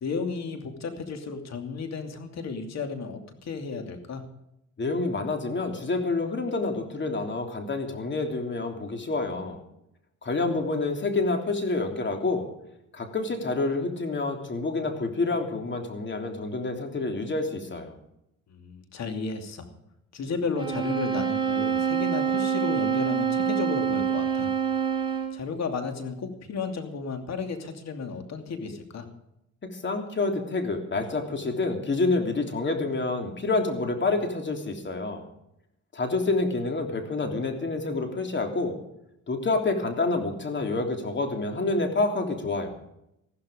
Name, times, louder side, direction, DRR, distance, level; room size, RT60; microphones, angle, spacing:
voice 1, 0.0-4.2 18.5-19.7 20.1-24.5 25.3-29.1, left 4 dB, 60° left, 6 dB, 2.7 m, -33 dB
voice 2, 4.8-9.6 10.2-12.5 12.9-17.9 29.6-35.3 35.9-38.8 39.3-42.7, left 3 dB, 40° left, 4 dB, 3.2 m, -28 dB
sound 1, 20.6-25.4, right 8 dB, 15° right, 3.7 m, -26 dB
15.0 x 13.0 x 5.1 m, 0.82 s
cardioid pair, 90°, 30 cm